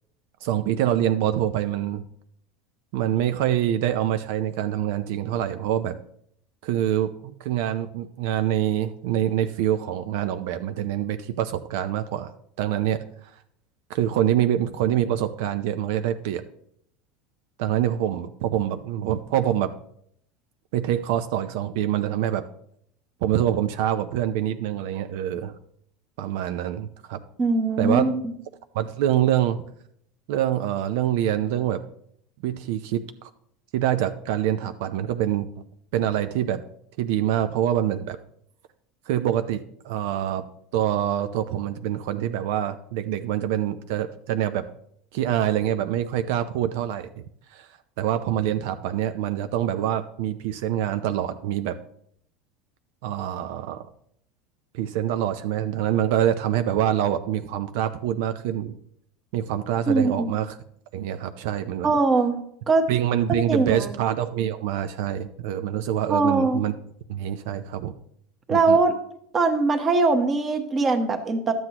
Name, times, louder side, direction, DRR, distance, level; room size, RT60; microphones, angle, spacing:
voice 1, 0.4-2.0 2.9-6.0 6.6-12.3 12.6-13.4 13.9-16.4 17.6-19.7 20.7-22.5 23.2-25.5 26.2-27.2 27.8-28.0 28.7-29.6 30.3-31.8 32.4-33.3 33.7-35.5 35.9-36.6 37.0-38.2 39.1-40.4 40.7-44.7 45.1-47.2 47.5-51.8 53.0-53.9 54.7-58.7 59.3-60.6 60.9-61.9 62.9-66.7 67.1-67.9 68.5-68.8, right 11 dB, 70° right, 10 dB, 0.5 m, -25 dB
voice 2, 27.4-28.1 59.9-60.4 61.8-62.4 62.7-62.9 63.5-63.9 66.1-66.6 68.5-68.9 69.3-71.5, right 3 dB, 20° right, 6 dB, 1.0 m, -21 dB
12.0 x 7.8 x 2.9 m, 0.70 s
supercardioid pair, 150°, 0 cm